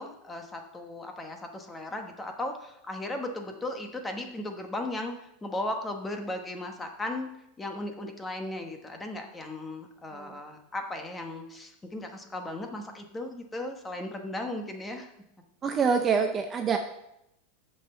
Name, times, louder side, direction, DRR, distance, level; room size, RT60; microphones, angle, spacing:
voice 1, 0.0-7.3 7.6-15.1, left 1 dB, 10° left, 4 dB, 1.1 m, -36 dB
voice 2, 15.6-16.8, right 6 dB, 20° right, 5 dB, 0.6 m, -26 dB
7.2 x 5.6 x 7.0 m, 0.83 s
supercardioid pair, 160°, 0 cm